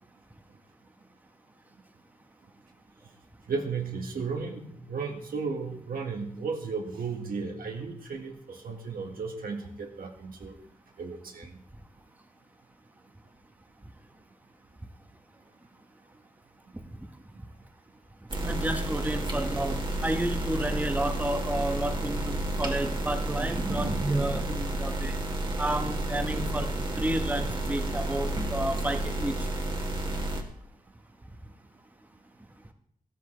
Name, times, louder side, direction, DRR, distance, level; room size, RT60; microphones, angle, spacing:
voice 1, 3.5-10.5 11.0-11.6, right 5 dB, 90° right, 2 dB, 1.8 m, -34 dB
sound 1, 18.3-30.4, right 1 dB, 35° right, 1.7 m, -31 dB
voice 2, 18.4-19.8 20.0-25.2 25.6-29.5, right 1 dB, 10° right, 5 dB, 1.2 m, -31 dB
14.5 x 13.5 x 3.3 m, 0.64 s
wide cardioid pair, 90°, 15 cm